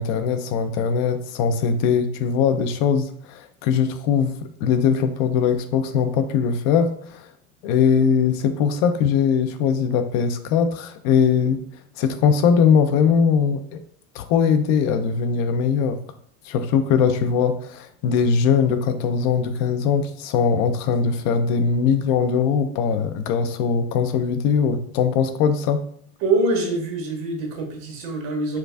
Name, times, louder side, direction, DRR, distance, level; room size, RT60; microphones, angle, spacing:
voice 1, 0.0-7.3 7.6-11.6 12.0-13.8 14.1-16.0 16.4-25.9, left 6 dB, 65° left, 9 dB, 0.5 m, -21 dB
voice 2, 26.2-28.6, right 2 dB, 85° right, 1 dB, 1.3 m, -24 dB
4.5 x 2.5 x 2.3 m, 0.62 s
supercardioid pair, 120°, 40 cm